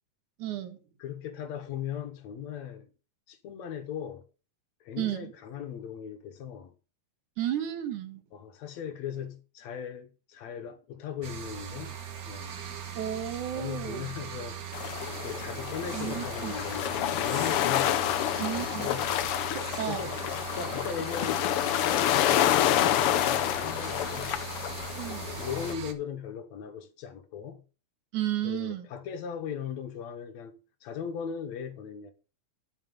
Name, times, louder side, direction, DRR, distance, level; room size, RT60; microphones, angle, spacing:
voice 1, 0.4-0.8 5.0-5.3 7.4-8.2 13.0-14.1 15.9-16.5 18.4-18.9 19.8-20.0 25.0-25.3 28.1-28.9, right 11 dB, 80° right, 2.9 m, -33 dB
voice 2, 1.0-2.9 3.3-4.2 4.8-6.7 8.3-12.0 12.3-12.6 13.5-14.6 15.2-19.2 19.9-24.5 25.4-27.6 28.4-32.1, left 8 dB, 70° left, 2.3 m, -38 dB
sound 1, 11.2-25.9, right 8 dB, 60° right, 0.9 m, -40 dB
sound 2, 14.7-25.7, left 12 dB, 90° left, 1.2 m, -28 dB
11.0 x 6.7 x 5.4 m
omnidirectional pair, 3.4 m